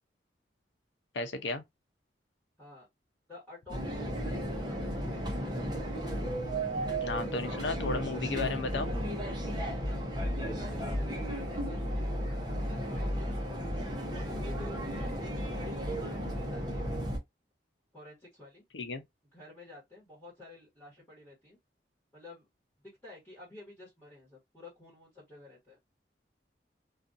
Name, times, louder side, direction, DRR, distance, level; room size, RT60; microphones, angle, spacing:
voice 1, 1.1-1.6 7.0-8.9 18.7-19.0, left 3 dB, 80° left, 0.6 m, -34 dB
voice 2, 3.3-4.9 5.3-5.7 10.1-13.6 14.1-17.1 17.9-18.6 19.3-21.6 22.1-22.5 23.0-25.8, left 2 dB, 10° left, 1.2 m, -51 dB
sound 1, 3.7-17.2, equal, 25° right, 0.7 m, -34 dB
2.5 x 2.4 x 2.5 m
head